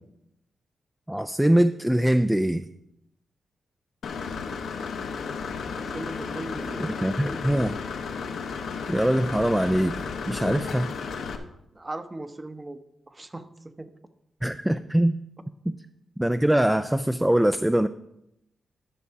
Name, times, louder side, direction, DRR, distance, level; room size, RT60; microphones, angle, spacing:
voice 1, 1.1-2.6 6.8-7.8 8.9-10.0 10.3-10.9 14.4-15.2 15.7-15.8 16.2-17.9, right 1 dB, 10° right, 10 dB, 0.3 m, -22 dB
Engine / Mechanisms, 4.0-11.4, left 5 dB, 80° left, 0.9 m, -33 dB
voice 2, 5.7-6.9 7.3-7.4 11.7-12.8 13.1-13.5 13.8-13.9, right 2 dB, 25° right, 10 dB, 0.8 m, -38 dB
11.0 x 5.9 x 4.7 m, 0.82 s
cardioid pair, 70°, 0 cm